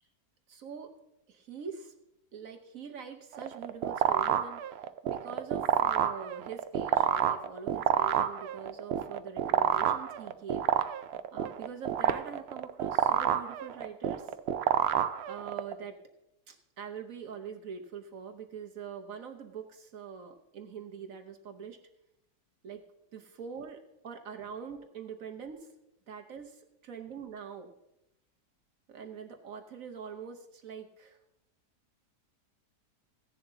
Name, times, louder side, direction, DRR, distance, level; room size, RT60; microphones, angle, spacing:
voice 1, 0.5-0.9 1.3-1.9 2.3-11.0 11.3-14.4 15.3-16.0 16.5-21.8 22.6-22.8 23.1-25.7 26.1-27.7 28.9-31.2, right 6 dB, 60° right, 4 dB, 1.2 m, -44 dB
sound 1, 3.3-15.7, right 10 dB, 85° right, 0.5 m, -28 dB
16.0 x 10.5 x 2.7 m, 0.87 s
omnidirectional pair, 1.7 m